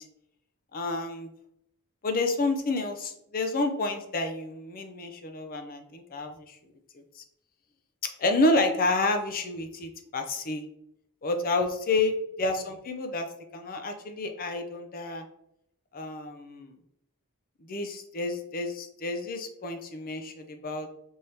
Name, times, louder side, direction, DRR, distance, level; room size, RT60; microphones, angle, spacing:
voice 1, 0.7-1.3 2.0-6.6 8.2-10.6 11.2-13.3 13.5-15.3 15.9-16.8 17.7-20.9, left 2 dB, 40° left, 6 dB, 0.5 m, -29 dB
5.3 x 2.8 x 3.3 m, 0.76 s
head